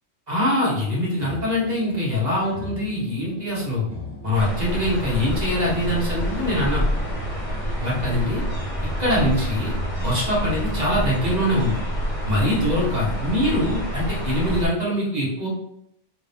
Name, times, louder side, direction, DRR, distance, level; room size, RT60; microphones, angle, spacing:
voice 1, 0.3-3.8 4.2-6.8 7.8-8.4 9.0-11.8 12.3-15.5, left 1 dB, 35° right, -6 dB, 1.4 m, -23 dB
sound 1, 1.2-13.9, left 2 dB, 70° right, 1.2 m, -41 dB
sound 2, 4.3-14.6, equal, 30° left, 1.0 m, -27 dB
3.7 x 2.7 x 3.4 m, 0.77 s
omnidirectional pair, 1.2 m